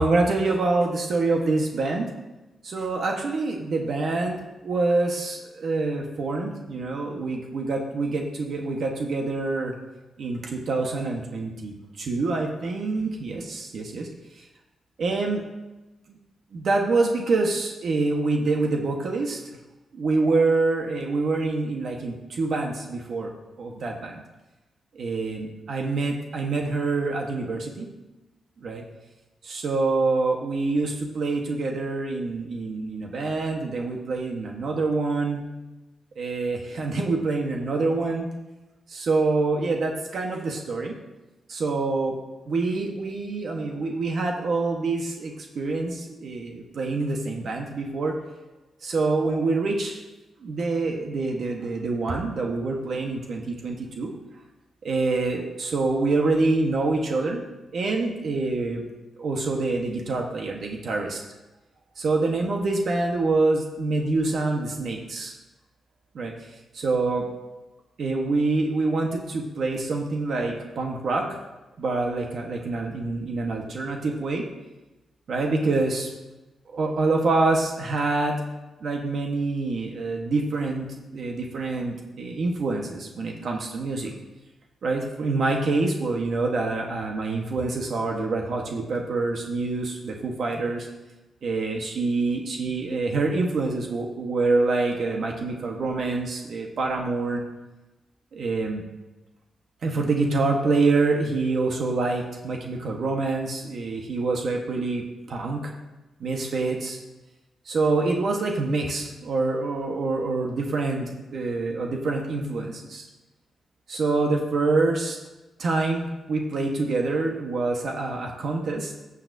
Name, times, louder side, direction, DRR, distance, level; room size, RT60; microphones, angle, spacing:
voice 1, 0.0-2.1 2.6-4.4 4.6-9.7 10.2-14.1 14.4-14.5 15.0-15.4 16.5-19.4 19.9-23.3 23.6-24.2 24.9-27.9 28.6-28.8 29.4-35.4 36.2-38.3 38.9-41.0 41.5-42.1 42.5-48.2 48.8-50.0 50.4-54.1 54.8-57.4 57.7-58.8 59.2-61.2 62.0-65.4 66.1-66.3 66.7-67.2 68.0-71.2 71.8-74.5 75.3-76.1 76.7-78.4 78.8-80.9 81.1-84.1 84.8-90.9 91.4-97.4 98.3-98.8 99.8-105.7 106.2-107.0 107.6-113.0 113.9-115.2 115.6-118.9, right 3 dB, 65° right, 1 dB, 1.3 m, -26 dB
14.5 x 6.8 x 2.7 m, 1.1 s
cardioid pair, 80°, 0 cm